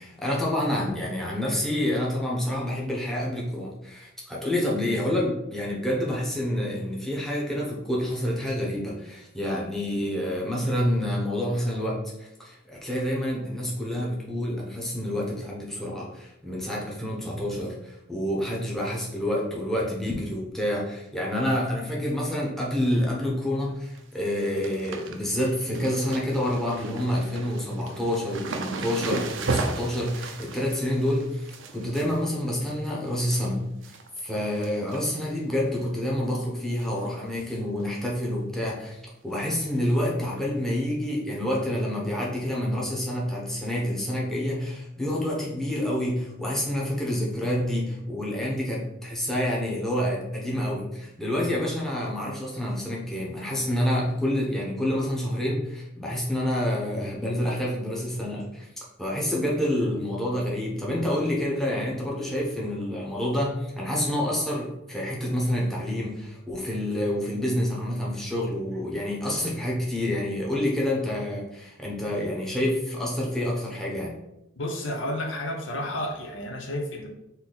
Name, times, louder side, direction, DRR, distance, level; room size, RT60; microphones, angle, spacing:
voice 1, 0.0-33.6 33.8-34.0 34.2-39.0 39.2-58.7 59.0-74.1, left 1 dB, ahead, -4 dB, 0.9 m, -28 dB
sound 1, 23.7-24.0 24.3-33.5 33.8-34.3 34.6-35.4 35.7-35.8 36.8-37.1 37.3-37.4 37.8-37.9 39.5-39.6 40.3-40.4, right 3 dB, 65° right, 0.5 m, -35 dB
voice 2, 74.6-77.1, left 1 dB, 70° left, 1 dB, 0.8 m, -31 dB
4.0 x 2.8 x 3.9 m, 0.88 s
head